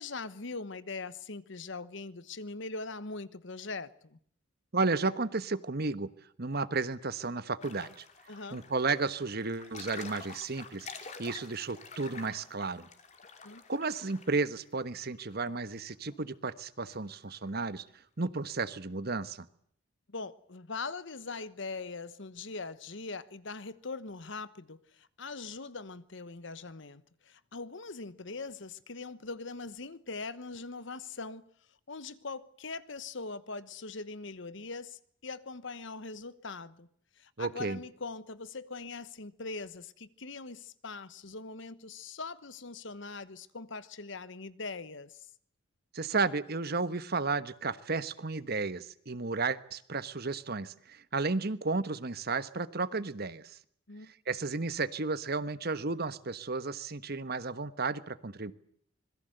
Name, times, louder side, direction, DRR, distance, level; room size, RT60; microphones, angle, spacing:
voice 1, 0.0-4.2 8.3-8.6 13.4-13.6 20.1-31.5 31.9-36.9 37.2-45.3 53.9-54.1, left 3 dB, 65° left, 1.2 m, -41 dB
voice 2, 4.7-6.1 6.4-8.0 8.5-12.9 13.7-17.8 18.2-19.5 37.4-37.8 45.9-53.6 54.3-58.5, right 3 dB, 50° right, 1.2 m, -33 dB
sound 1, 7.6-14.5 14.7-14.8 15.1-16.1 16.4-16.5 16.9-17.0 17.3-17.4, left 4 dB, 35° left, 3.0 m, -48 dB
26.0 x 21.5 x 7.9 m
head